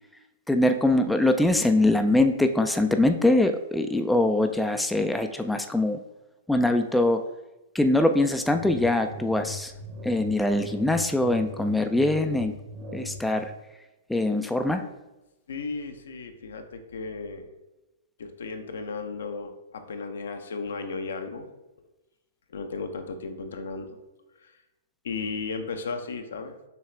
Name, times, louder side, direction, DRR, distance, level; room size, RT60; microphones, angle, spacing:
voice 1, 0.5-6.0 6.5-7.2 7.7-9.7 10.0-12.5 12.9-13.5 14.1-14.8, left 2 dB, 5° left, 6 dB, 0.3 m, -23 dB
sound 1, 8.5-13.5, left 2 dB, 40° right, 1.1 m, -40 dB
voice 2, 15.5-17.5 18.2-21.5 22.5-24.0 24.3-24.6 25.0-26.6, left 4 dB, 75° left, 7 dB, 0.6 m, -35 dB
6.7 x 2.4 x 3.3 m, 1.0 s
hypercardioid pair, 115°, 0 cm